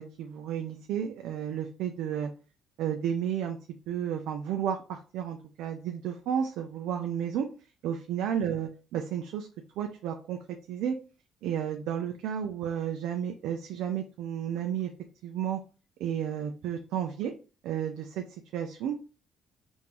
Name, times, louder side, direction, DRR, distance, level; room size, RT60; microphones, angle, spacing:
voice 1, 0.0-2.3 2.8-3.6 3.9-7.5 7.8-9.5 9.8-11.0 11.4-14.9 15.2-15.6 16.0-17.3 17.6-18.2 18.5-19.0, right 9 dB, 90° right, 5 dB, 0.4 m, -32 dB
3.6 x 2.6 x 2.9 m, 0.35 s
cardioid pair, 120°, 0 cm